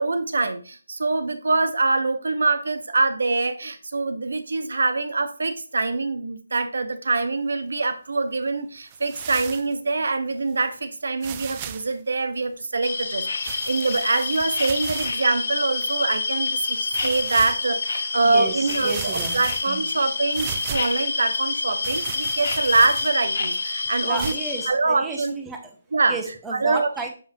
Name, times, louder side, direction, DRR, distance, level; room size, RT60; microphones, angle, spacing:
voice 1, 0.0-24.3 24.7-25.3 25.9-26.2 26.5-26.9, right 3 dB, 75° right, 1.0 m, -24 dB
sound 1, 8.9-9.7 10.5-10.6 11.2-11.9 13.4-15.2 15.8-15.9 16.9-17.6 18.3-18.4 18.7-19.9 20.3-21.1 21.8-23.3 24.2-24.3, right 9 dB, 20° right, 0.4 m, -36 dB
sound 2, 12.8-24.7, left 4 dB, 55° left, 0.9 m, -28 dB
voice 2, 18.2-19.4 19.7-19.8 24.0-25.8 26.1-27.1, right 4 dB, 5° right, 0.8 m, -33 dB
6.8 x 5.2 x 2.7 m
hypercardioid pair, 165°, 0 cm